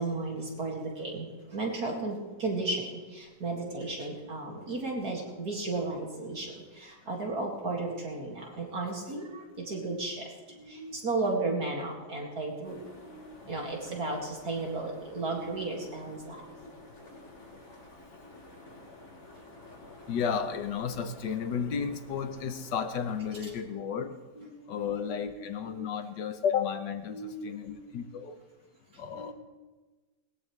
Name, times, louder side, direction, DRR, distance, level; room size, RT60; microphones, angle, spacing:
voice 1, 0.0-17.2 18.7-19.0 19.3-19.5 20.0-20.1 23.4-23.5 24.4-25.5 27.1-28.1 28.9-29.3, right 3 dB, 60° right, -1 dB, 2.8 m, -35 dB
sound 1, 12.6-23.6, left 2 dB, 65° left, 5.0 m, -51 dB
voice 2, 20.1-24.2 24.7-28.4 29.0-29.3, left 7 dB, 85° left, 9 dB, 1.6 m, -33 dB
21.0 x 20.5 x 3.3 m, 1.3 s
omnidirectional pair, 1.8 m